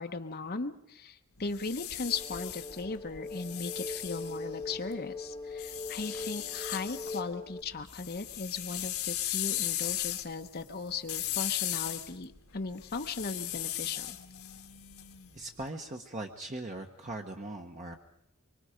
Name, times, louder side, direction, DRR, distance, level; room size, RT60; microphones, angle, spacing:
voice 1, 0.0-14.2, left 4 dB, 45° left, 6 dB, 0.9 m, -37 dB
sound 1, 1.4-4.9 5.6-7.2 7.6-15.5, left 13 dB, 70° left, 1.6 m, -37 dB
sound 2, 2.1-7.6, left 2 dB, 15° left, 0.7 m, -41 dB
voice 2, 15.3-18.0, right 2 dB, 35° right, 2 dB, 1.2 m, -40 dB
25.0 x 24.0 x 5.1 m, 0.76 s
head